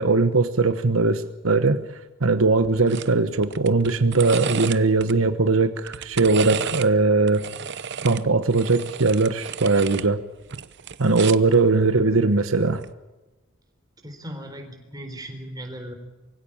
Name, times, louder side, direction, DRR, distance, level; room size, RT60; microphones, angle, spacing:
voice 1, 0.0-1.8 2.2-7.4 8.0-10.2 11.0-12.8, right 3 dB, 75° right, 10 dB, 1.1 m, -20 dB
sound 1, 2.9-3.1 3.4-5.1 5.8-6.9 7.3-10.1 10.4-11.5 12.7-12.9, right 7 dB, 55° right, 0.8 m, -32 dB
voice 2, 14.0-15.9, equal, 20° right, 4 dB, 4.1 m, -37 dB
23.5 x 16.5 x 8.7 m, 1.1 s
head